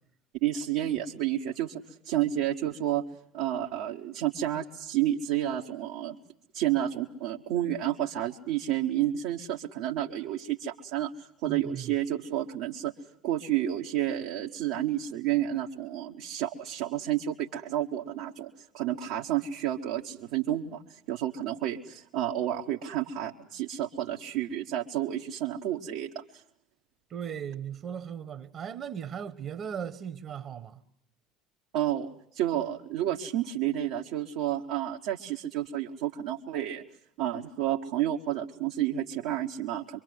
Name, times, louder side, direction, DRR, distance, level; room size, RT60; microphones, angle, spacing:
voice 1, 0.4-3.0 3.3-6.2 6.5-12.9 13.2-26.4 31.7-32.1 32.3-36.8 37.2-40.0, right 12 dB, 60° right, 1.5 m, -30 dB
voice 2, 11.4-11.9 27.1-30.8, right 8 dB, 40° right, 1.5 m, -37 dB
25.5 x 24.0 x 7.9 m
figure-of-eight pair, 65°, 0 cm